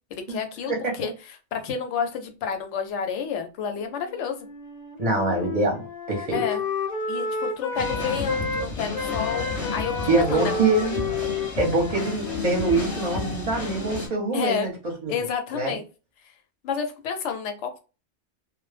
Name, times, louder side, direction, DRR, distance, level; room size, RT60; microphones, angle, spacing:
voice 1, 0.1-4.5 6.3-6.6 7.1-10.0 10.3-10.5 14.3-14.7 15.1-15.8 16.6-17.8, left 7 dB, 80° left, 6 dB, 0.9 m, -30 dB
Wind instrument woodwind instrument, 3.7-8.7 8.9-14.2, left 4 dB, 60° left, 0.4 m, -32 dB
voice 2, 5.0-5.8 6.1-6.4 10.1-10.9 11.6-14.7 15.0-15.1 15.5-15.7, right 3 dB, 40° right, 1 dB, 0.6 m, -24 dB
sound 1, 7.8-14.1, left 3 dB, 35° left, 0.7 m, -32 dB
2.1 x 2.0 x 3.1 m, 0.32 s
omnidirectional pair, 1.2 m